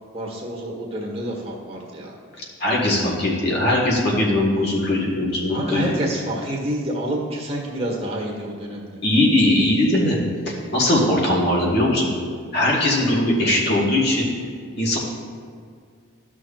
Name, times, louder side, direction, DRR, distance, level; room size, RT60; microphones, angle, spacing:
voice 1, 0.1-2.1 5.5-9.0, right 1 dB, 30° right, -3 dB, 1.5 m, -28 dB
voice 2, 2.6-5.8 9.0-12.2 12.5-14.3 14.8-15.0, left 1 dB, 55° left, -3 dB, 1.7 m, -20 dB
13.0 x 6.2 x 2.5 m, 2.1 s
head